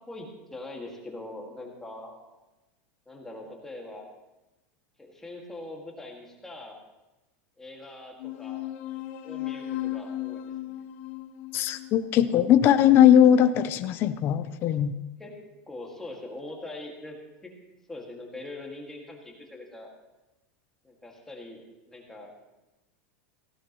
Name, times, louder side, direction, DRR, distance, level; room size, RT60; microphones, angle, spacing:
voice 1, 0.1-2.2 3.1-4.1 5.0-6.8 7.6-8.7 9.0-10.4 10.7-10.8 15.2-15.3 15.7-17.2 17.4-17.5 17.9-19.9 20.8-21.6 21.9-22.3, left 2 dB, 5° left, -1 dB, 2.0 m, -42 dB
sound 1, 8.2-13.1, left 13 dB, 60° left, 1.4 m, -36 dB
voice 2, 11.5-14.9, left 10 dB, 30° left, 10 dB, 0.6 m, -19 dB
17.5 x 16.0 x 3.1 m, 1.0 s
supercardioid pair, 165°, 7 cm